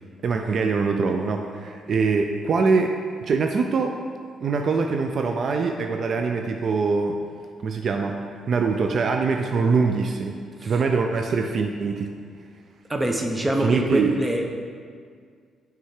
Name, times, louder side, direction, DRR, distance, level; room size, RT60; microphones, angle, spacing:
voice 1, 0.2-4.0 4.4-7.2 7.6-10.4 10.6-12.1 13.6-14.1, right 4 dB, 55° right, 4 dB, 0.3 m, -23 dB
voice 2, 12.9-14.5, right 1 dB, 15° right, 3 dB, 0.7 m, -24 dB
6.3 x 3.4 x 4.7 m, 2.1 s
cardioid pair, 90°, 0 cm